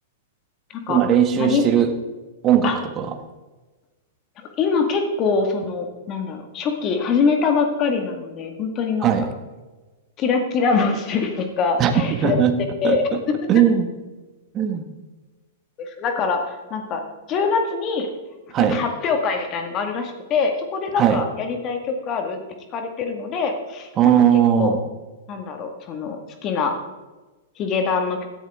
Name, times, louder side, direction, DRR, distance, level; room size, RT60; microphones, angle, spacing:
voice 1, 0.9-1.9 2.4-3.1 9.0-9.3 11.8-12.5 12.8-13.2 13.5-13.9 14.5-14.8 18.5-18.8 21.0-21.2 24.0-24.8, right 9 dB, 30° right, 6 dB, 1.4 m, -18 dB
voice 2, 4.6-9.1 10.2-12.4 12.8-13.0 15.8-17.0 17.3-18.1 18.6-22.4 22.7-24.1 24.6-24.7 25.3-26.7 27.6-28.3, left 5 dB, 35° left, 5 dB, 2.0 m, -23 dB
16.5 x 10.5 x 3.7 m, 1.2 s
hypercardioid pair, 105°, 0 cm